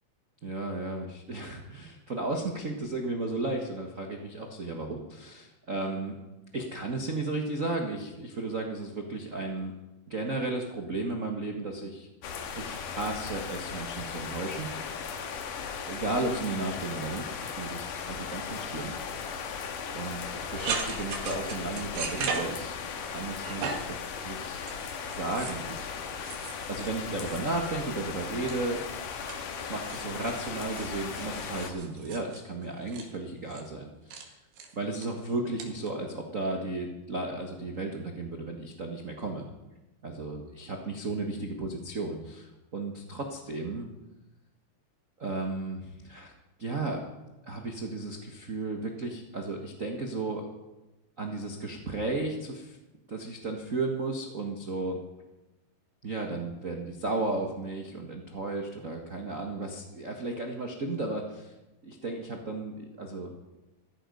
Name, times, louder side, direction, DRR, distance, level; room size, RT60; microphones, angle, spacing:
voice 1, 0.4-6.2 6.5-9.7 10.1-12.1 12.5-14.7 15.9-19.6 19.9-22.7 23.0-23.8 24.2-24.8 25.1-26.0 26.7-28.8 29.7-34.4 34.7-39.5 40.0-43.9 45.2-46.3 46.6-47.0 47.5-50.4 51.2-52.8 53.1-55.0 56.0-61.5 61.8-63.3, right 2 dB, 70° right, 2 dB, 0.7 m, -34 dB
sound 1, 12.2-31.7, left 6 dB, 70° left, 2.9 m, -37 dB
sound 2, 20.5-23.0 23.4-24.0 24.6-25.7 26.2-27.8 28.1-28.9 29.3-33.1 33.5-33.7 34.1-34.3 34.5-35.1 35.6-35.9, right 5 dB, 85° right, 3.7 m, -38 dB
15.0 x 14.5 x 5.4 m, 1.0 s
omnidirectional pair, 4.0 m